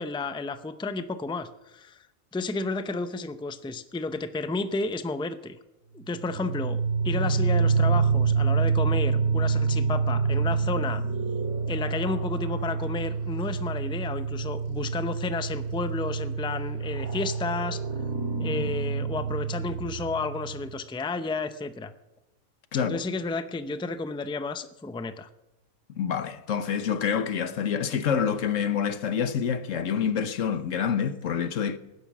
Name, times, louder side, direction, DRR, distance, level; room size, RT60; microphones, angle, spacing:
voice 1, 0.0-2.0 2.3-5.6 5.9-11.0 11.7-17.8 18.4-21.9 22.8-25.3, left 3 dB, 5° left, 0.4 m, -32 dB
sound 1, 6.1-20.7, right 5 dB, 85° right, 2.9 m, -27 dB
voice 2, 26.0-31.8, left 7 dB, 65° left, 1.3 m, -27 dB
19.0 x 11.0 x 6.1 m
omnidirectional pair, 1.5 m